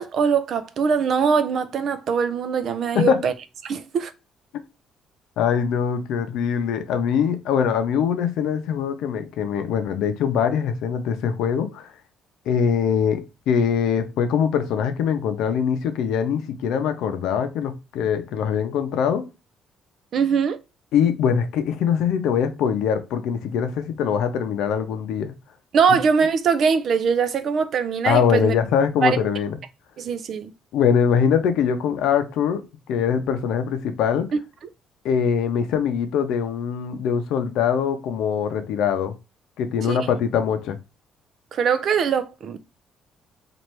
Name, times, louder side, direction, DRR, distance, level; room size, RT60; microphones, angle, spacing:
voice 1, 0.0-3.3 3.6-4.1 20.1-20.6 25.7-28.5 29.0-29.2 30.0-30.5 39.9-40.0 41.5-42.6, right 6 dB, 45° right, 0.4 m, -22 dB
voice 2, 5.4-11.9 12.5-19.2 20.9-25.3 28.0-29.6 30.7-34.3 35.0-39.1 39.6-40.8, left 7 dB, 75° left, 0.6 m, -22 dB
3.2 x 2.5 x 4.4 m
cardioid pair, 170°, 0 cm